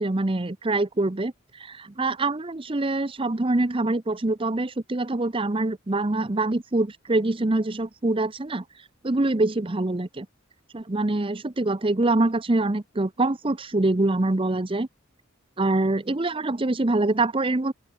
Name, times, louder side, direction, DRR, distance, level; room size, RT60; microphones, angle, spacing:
voice 1, 0.0-8.6 9.0-10.3 10.7-14.9 15.6-17.7, right 2 dB, 25° right, 0.7 m, -24 dB
open air
head